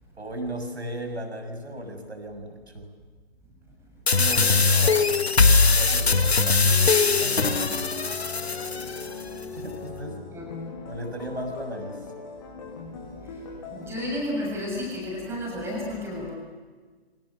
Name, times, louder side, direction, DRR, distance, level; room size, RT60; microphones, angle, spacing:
voice 1, 0.1-2.9 4.1-5.1 5.6-8.1 9.5-10.2 10.8-12.0, right 1 dB, 80° right, 6 dB, 6.8 m, -36 dB
sound 1, 4.1-9.1, left 4 dB, 75° left, 1.9 m, -21 dB
sound 2, 6.6-14.1, left 5 dB, 30° left, 7.4 m, -39 dB
voice 2, 13.7-16.3, left 1 dB, 10° right, -2 dB, 7.0 m, -31 dB
28.5 x 26.0 x 6.9 m, 1.4 s
figure-of-eight pair, 135°, 32 cm